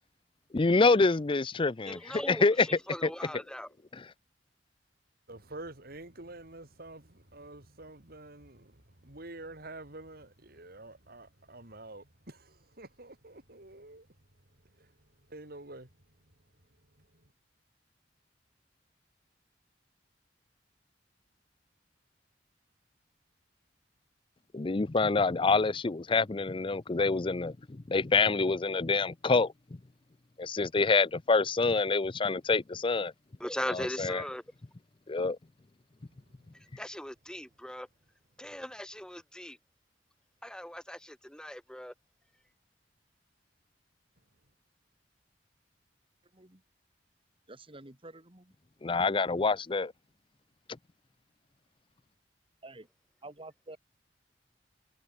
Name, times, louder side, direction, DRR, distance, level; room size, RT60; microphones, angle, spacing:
voice 1, 0.5-2.0 2.3-2.7 24.5-29.5 30.4-33.1 34.0-34.2 35.1-35.4 48.8-49.9, left 4 dB, 30° left, 0.5 m, -26 dB
voice 2, 1.8-3.7 33.4-34.4 36.5-37.9 38.4-39.6 40.4-41.9, equal, 5° left, 3.2 m, -39 dB
voice 3, 5.3-14.1 14.8-14.9 15.3-15.9 17.0-17.2 36.0-36.1, right 2 dB, 55° right, 3.9 m, -48 dB
voice 4, 47.5-48.5 52.6-52.9 53.2-53.8, right 2 dB, 30° right, 2.8 m, -49 dB
head